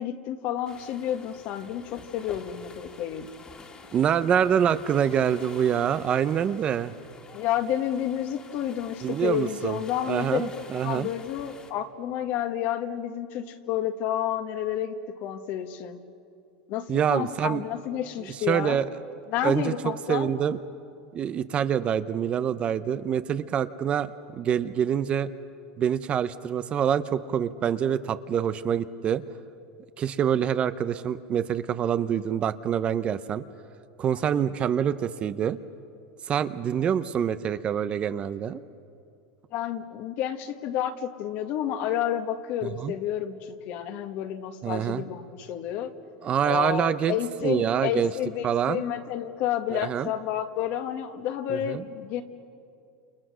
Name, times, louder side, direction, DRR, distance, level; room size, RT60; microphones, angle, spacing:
voice 1, 0.0-3.3 7.3-10.5 10.8-16.0 16.7-18.8 19.3-20.3 34.1-34.5 39.5-45.9 46.4-52.2, left 10 dB, 50° left, 8 dB, 1.7 m, -30 dB
sound 1, 0.7-11.7, left 4 dB, 25° left, 2.3 m, -48 dB
voice 2, 3.9-6.9 9.0-9.8 10.1-11.1 16.9-17.6 18.5-18.8 19.4-19.7 20.1-20.6 21.1-25.3 25.8-29.2 30.0-33.4 34.0-35.6 36.3-38.6 42.8-42.9 44.6-45.0 46.2-47.1 47.4-48.1 48.4-48.8 49.7-50.1 51.5-51.8, right 8 dB, 30° right, 12 dB, 0.7 m, -26 dB
29.0 x 28.5 x 6.3 m, 2.5 s
supercardioid pair, 140°, 4 cm